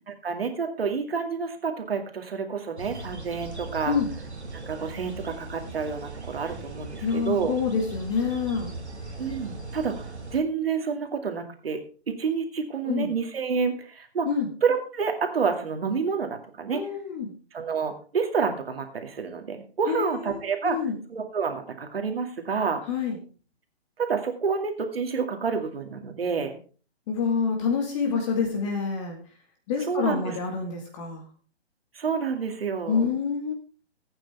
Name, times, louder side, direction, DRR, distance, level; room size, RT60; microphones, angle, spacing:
voice 1, 0.2-3.9 4.5-7.5 9.2-14.3 14.6-16.8 17.5-20.8 21.1-22.8 24.0-26.6 28.0-28.2 29.9-30.2 31.9-33.0, right 5 dB, 60° right, 5 dB, 2.3 m, -29 dB
sound 1, 2.8-10.4, right 3 dB, 90° right, 2.6 m, -39 dB
voice 2, 7.0-8.7 12.9-13.1 14.3-14.5 16.7-17.3 19.9-21.0 22.9-23.2 27.1-29.2 29.7-31.3 32.9-33.5, left 5 dB, 30° left, 2 dB, 1.9 m, -27 dB
16.5 x 8.9 x 3.5 m, 0.39 s
figure-of-eight pair, 140°, 33 cm